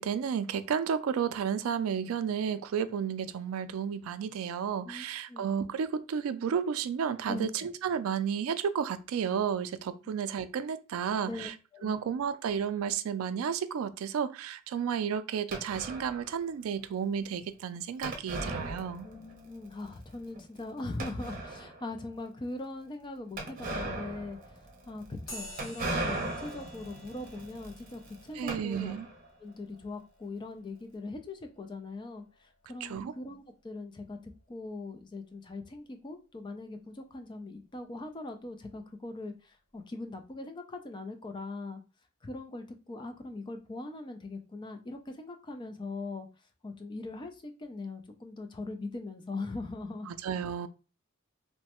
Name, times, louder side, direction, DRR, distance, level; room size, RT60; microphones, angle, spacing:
voice 1, 0.0-11.5 11.8-19.1 28.4-29.1 32.8-33.1 50.1-50.7, right 7 dB, 90° right, 0.3 m, -32 dB
voice 2, 4.8-5.4 7.3-7.5 11.3-12.0 19.0-28.9 29.4-41.8 42.2-46.3 46.6-50.1, left 2 dB, 20° left, 0.4 m, -41 dB
sound 1, 15.5-16.3 18.0-19.4 19.7-19.8 20.3-20.4 21.0-21.8 23.4-29.2, right 2 dB, 45° right, 0.7 m, -38 dB
sound 2, 25.3-33.2, left 1 dB, 65° left, 1.0 m, -51 dB
3.1 x 2.1 x 2.9 m
head